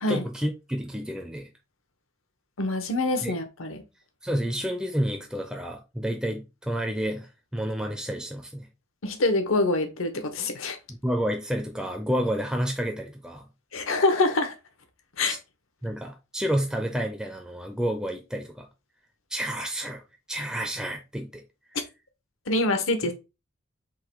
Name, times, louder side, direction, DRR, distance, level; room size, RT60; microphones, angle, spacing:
voice 1, 0.1-1.5 3.2-3.3 4.2-8.7 10.9-13.5 15.2-15.4 15.8-18.7 19.3-20.0 20.3-21.4 23.0-23.1, equal, 5° right, 0.4 m, -30 dB
voice 2, 2.6-3.8 9.0-10.8 13.7-14.5 15.2-15.4 22.5-23.1, left 2 dB, 80° left, 1.0 m, -25 dB
3.8 x 2.9 x 4.5 m
head